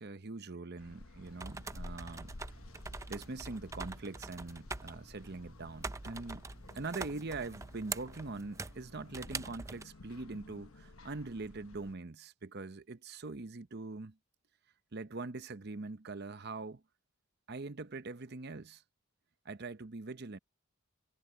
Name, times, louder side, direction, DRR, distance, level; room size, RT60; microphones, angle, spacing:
voice 1, 0.0-2.3 3.1-6.5 6.7-14.2 14.9-16.8 17.5-18.8 19.4-20.4, right 3 dB, 45° right, 0.8 m, -43 dB
sound 1, 0.8-12.0, left 2 dB, 70° left, 1.1 m, -53 dB
sound 2, 1.2-9.8, right 3 dB, 15° right, 0.4 m, -45 dB
head